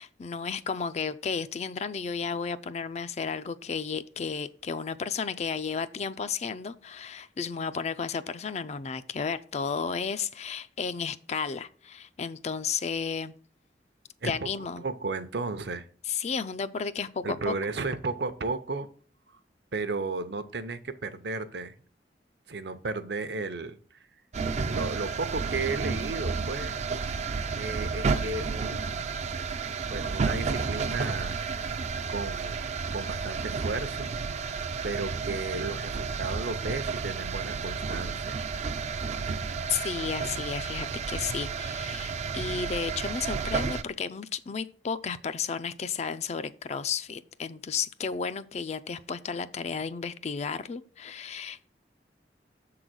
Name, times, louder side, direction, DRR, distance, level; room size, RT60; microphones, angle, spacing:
voice 1, 0.0-13.3 14.2-14.8 16.1-17.5 39.7-51.7, left 6 dB, 40° left, 0.4 m, -33 dB
voice 2, 14.8-15.9 17.2-18.9 19.3-19.4 19.7-21.7 22.5-24.0 24.6-26.8 27.6-29.1 29.9-31.4 32.1-32.6 32.9-34.1 34.8-38.4, right 3 dB, 65° right, 0.7 m, -34 dB
sound 1, 24.3-43.8, right 5 dB, 40° right, 0.4 m, -31 dB
7.1 x 3.9 x 6.1 m
head